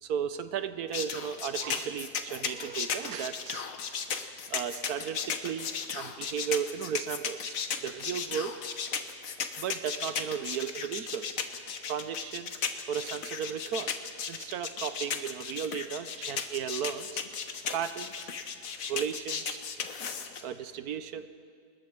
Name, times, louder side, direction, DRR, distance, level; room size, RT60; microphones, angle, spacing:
voice 1, 0.0-3.7 4.5-7.5 7.8-8.6 9.6-11.3 11.6-12.5 12.9-13.9 14.3-17.2 17.7-18.3 18.9-19.6 20.4-21.3, right 8 dB, 75° right, 11 dB, 1.3 m, -35 dB
sound 1, 0.9-20.4, left 6 dB, 60° left, 1.4 m, -35 dB
28.0 x 20.0 x 4.6 m, 2.2 s
omnidirectional pair, 1.7 m